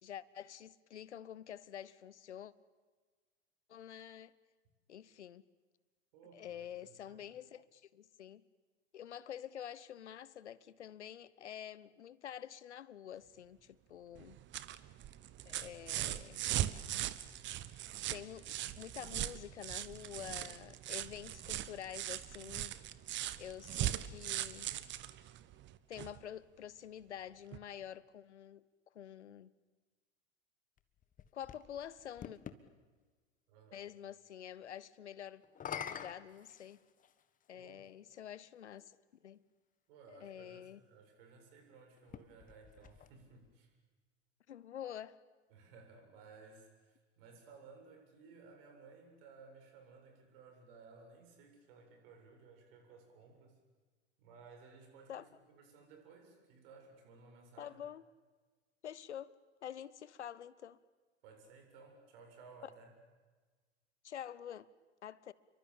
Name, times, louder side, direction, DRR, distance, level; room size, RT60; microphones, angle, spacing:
voice 1, 0.0-2.5 3.7-4.3 4.9-5.5 6.3-8.4 8.9-14.4 15.4-16.5 18.1-22.8 23.4-24.7 25.9-28.7 28.9-29.5 31.3-32.4 33.7-35.4 35.8-36.8 37.5-39.0 39.2-39.4 40.1-40.8 44.5-45.2 55.1-55.2 57.6-58.0 58.8-60.8 64.0-64.7 65.0-65.3, left 10 dB, 75° left, 1.0 m, -48 dB
voice 2, 6.1-7.4 33.5-33.9 37.5-37.9 39.9-43.7 45.5-53.6 54.2-57.8 61.2-62.9, right 4 dB, 55° right, 7.6 m, -58 dB
sound 1, 14.2-26.2 27.5-27.6, right 13 dB, 30° right, 1.3 m, -40 dB
sound 2, 30.8-32.6 35.4-37.2 38.2-38.3 42.0-43.5, left 8 dB, 25° left, 1.4 m, -47 dB
29.0 x 23.5 x 8.8 m
figure-of-eight pair, 90°, 35 cm